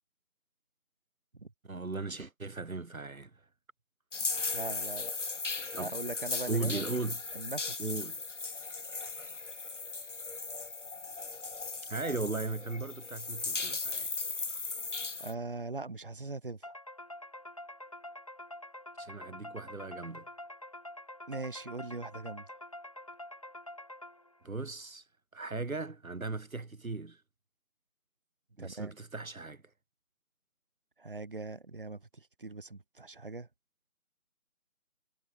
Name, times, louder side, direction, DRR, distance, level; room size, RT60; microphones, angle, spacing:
voice 1, 1.6-3.3 5.7-5.9 6.5-7.2 7.8-8.2 11.9-14.1 19.0-20.3 24.4-25.0 25.3-27.2 28.6-29.6, right 3 dB, 70° right, 2.2 m, -37 dB
sound 1, 4.1-15.3, left 4 dB, 55° left, 1.3 m, -37 dB
voice 2, 4.5-5.1 5.8-6.9 7.3-7.9 15.2-16.7 21.3-22.5 28.6-28.9 31.0-33.5, right 3 dB, 40° right, 2.7 m, -41 dB
sound 2, 16.6-24.5, left 1 dB, 25° left, 1.5 m, -47 dB
figure-of-eight pair, 175°, 42 cm